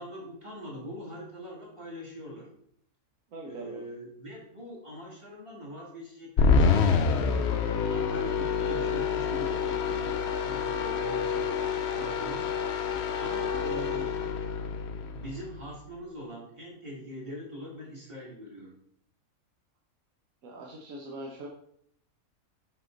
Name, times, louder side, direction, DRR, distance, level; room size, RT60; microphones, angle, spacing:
voice 1, 0.0-2.5 3.5-7.4 7.9-10.2 10.4-12.5 13.2-14.2 15.1-18.8, equal, 20° right, -3 dB, 2.1 m, -42 dB
voice 2, 3.3-3.8 20.4-21.5, right 1 dB, 70° right, -1 dB, 1.3 m, -41 dB
sound 1, 6.4-15.7, left 5 dB, 60° left, 0.8 m, -27 dB
5.8 x 5.7 x 3.8 m, 0.68 s
omnidirectional pair, 1.5 m